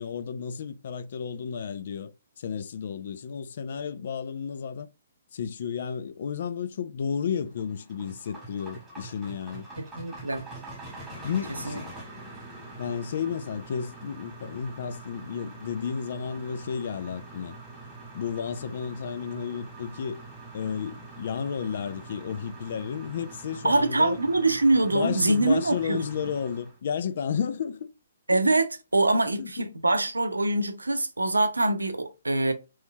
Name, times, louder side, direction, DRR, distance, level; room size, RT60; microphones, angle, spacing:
voice 1, 0.0-2.1 2.4-4.9 5.3-9.7 11.2-11.9 12.8-17.6 18.1-20.2 20.5-24.2 24.9-27.9 29.4-29.7, left 7 dB, 55° left, 0.4 m, -32 dB
sound 1, 7.4-26.8, right 2 dB, 10° right, 1.6 m, -44 dB
voice 2, 9.8-10.4 11.6-11.8 23.6-26.0 28.3-32.5, right 2 dB, 85° right, 0.6 m, -24 dB
3.1 x 3.1 x 2.2 m
figure-of-eight pair, 130°, 0 cm